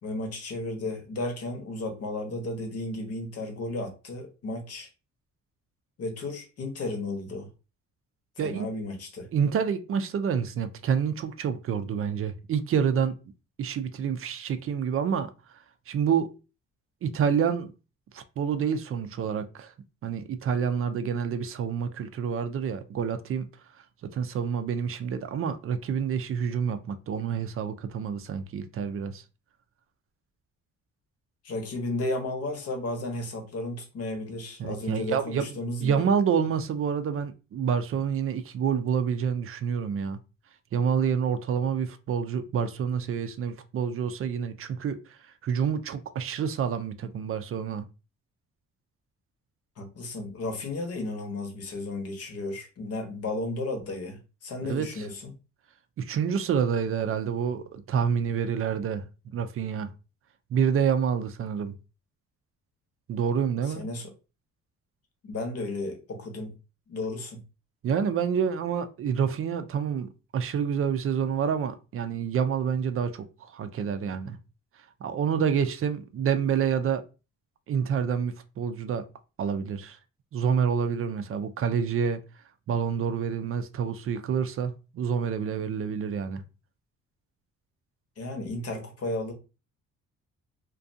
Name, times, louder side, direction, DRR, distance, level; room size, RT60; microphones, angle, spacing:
voice 1, 0.0-4.9 6.0-7.5 8.4-9.3 31.4-36.0 49.8-55.3 63.7-64.1 65.2-66.5 66.9-67.4 88.2-89.3, left 2 dB, 55° left, 0.9 m, -33 dB
voice 2, 9.3-13.2 13.6-15.3 15.9-16.3 17.0-17.7 18.1-19.7 20.0-23.5 24.0-29.2 34.6-35.5 35.8-40.2 40.7-47.9 54.6-55.1 56.0-59.9 60.5-61.7 63.1-63.9 67.8-74.4 75.0-77.0 77.7-79.1 79.4-80.0 80.3-82.2 82.7-86.4, right 7 dB, 50° right, 0.4 m, -28 dB
2.4 x 2.3 x 2.5 m
cardioid pair, 90°, 30 cm